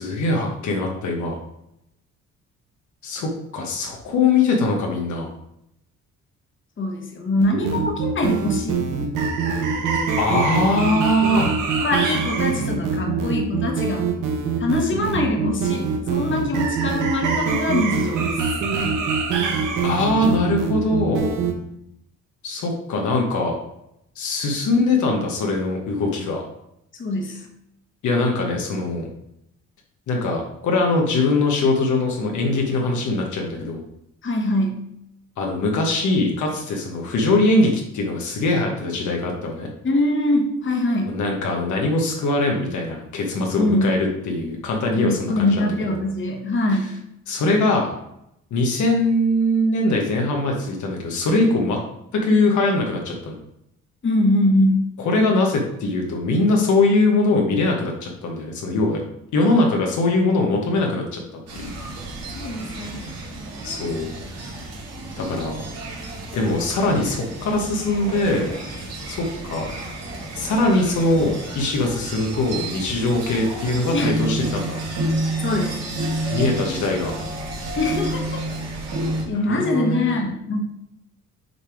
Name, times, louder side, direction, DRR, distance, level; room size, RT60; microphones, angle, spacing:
voice 1, 0.0-1.4 3.0-5.3 10.2-11.5 18.8-18.9 19.8-21.4 22.4-23.5 24.1-26.4 28.0-29.1 30.1-33.8 35.4-39.7 41.1-46.0 46.7-46.9 47.3-47.9 48.5-51.8 52.1-53.4 55.0-59.0 59.3-61.2 61.5-61.7 63.6-64.1 65.2-65.7 66.3-68.5 69.1-69.7 70.3-74.8 76.3-77.1 79.3-80.2, left 2 dB, 75° left, 1 dB, 1.2 m, -22 dB
voice 2, 6.8-8.9 11.8-14.0 14.6-18.3 27.0-27.4 34.2-34.8 39.8-41.2 43.6-43.9 44.9-47.0 54.0-54.9 62.3-63.1 73.9-74.1 75.4-75.7 77.8-78.4 79.3-80.6, left 1 dB, 40° left, 2 dB, 1.4 m, -23 dB
sound 1, 7.4-21.5, right 5 dB, 80° right, 1.1 m, -24 dB
sound 2, 61.5-79.2, right 1 dB, 60° right, 1.8 m, -30 dB
6.5 x 3.3 x 4.8 m, 0.80 s
cardioid pair, 90°, 30 cm